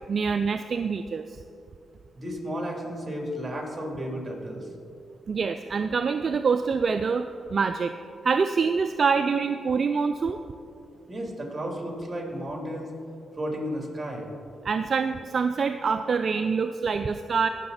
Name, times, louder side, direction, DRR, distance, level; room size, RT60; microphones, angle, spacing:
voice 1, 0.1-1.4 5.3-7.9 8.2-10.4 14.6-17.5, right 5 dB, 55° right, 8 dB, 0.4 m, -25 dB
voice 2, 2.1-4.7 11.1-12.9 13.3-14.3, equal, 25° right, 0 dB, 3.1 m, -33 dB
17.5 x 6.6 x 4.1 m, 2.5 s
cardioid pair, 60°, 0 cm